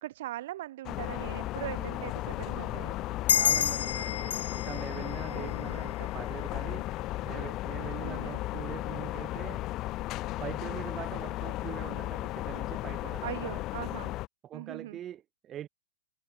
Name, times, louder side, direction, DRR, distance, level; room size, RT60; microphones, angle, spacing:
voice 1, 0.0-3.0 5.3-5.8 8.0-8.4 13.2-14.1 14.5-15.0, right 14 dB, 60° right, 0.7 m, -40 dB
sound 1, 0.8-14.3, left 17 dB, 30° left, 1.0 m, -35 dB
sound 2, 3.3-6.4, left 9 dB, 85° left, 0.5 m, -30 dB
voice 2, 3.3-6.9 7.2-9.6 10.3-13.6 14.4-15.7, right 11 dB, 20° right, 0.7 m, -43 dB
hypercardioid pair, 155°, 0 cm